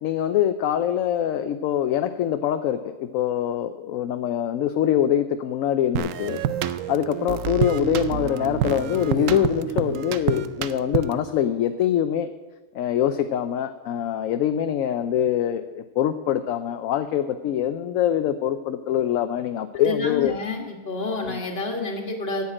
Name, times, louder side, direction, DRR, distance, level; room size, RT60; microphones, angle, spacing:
voice 1, 0.0-6.4 6.9-12.3 12.7-20.3 21.3-21.4, left 10 dB, 70° left, 9 dB, 0.9 m, -24 dB
sound 1, 5.9-11.3, right 10 dB, 70° right, 0.9 m, -28 dB
voice 2, 19.8-22.4, left 3 dB, 40° left, 2 dB, 1.9 m, -29 dB
9.7 x 7.3 x 8.8 m, 1.3 s
omnidirectional pair, 1.6 m